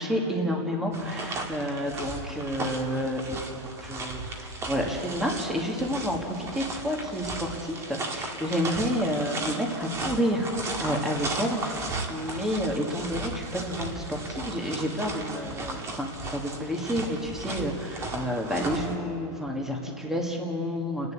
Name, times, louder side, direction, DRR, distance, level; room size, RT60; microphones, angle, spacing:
voice 1, 0.0-10.5 10.8-21.1, equal, 5° right, 0 dB, 1.8 m, -30 dB
sound 1, 0.9-19.0, right 2 dB, 20° right, 1.8 m, -36 dB
30.0 x 11.0 x 8.3 m, 2.7 s
supercardioid pair, 150°, 15 cm